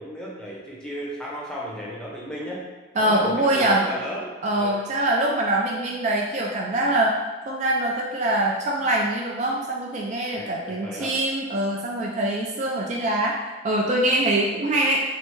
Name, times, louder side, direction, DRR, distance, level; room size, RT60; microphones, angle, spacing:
voice 1, 0.0-2.6 3.0-4.8 10.3-11.1, equal, 5° left, -5 dB, 0.6 m, -34 dB
voice 2, 3.0-3.8 4.4-7.2 7.5-15.0, right 1 dB, 40° right, -2 dB, 0.3 m, -23 dB
3.2 x 2.6 x 3.1 m, 1.3 s
head